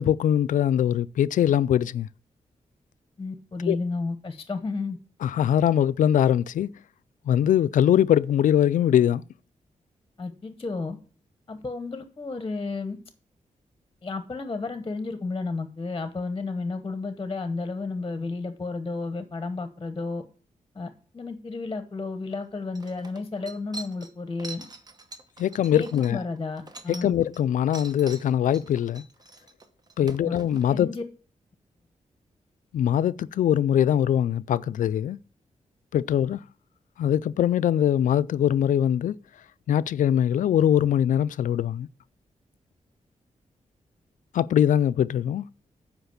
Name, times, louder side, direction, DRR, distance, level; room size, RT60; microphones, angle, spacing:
voice 1, 0.0-2.1 3.7-3.8 5.2-6.7 7.3-9.3 25.4-26.2 26.9-29.0 30.0-30.9 32.7-35.2 35.9-36.4 37.0-39.1 39.7-41.9 44.3-45.5, left 10 dB, 85° left, 0.4 m, -22 dB
voice 2, 3.2-5.0 10.2-11.0 11.5-13.0 14.0-20.2 20.7-24.6 25.7-27.1 30.3-30.4 30.7-31.0, left 3 dB, 25° left, 0.9 m, -32 dB
sound 1, 22.3-22.4 22.7-27.4 27.7-30.7, right 3 dB, 30° right, 1.0 m, -44 dB
8.0 x 5.2 x 6.6 m
wide cardioid pair, 120°, 13 cm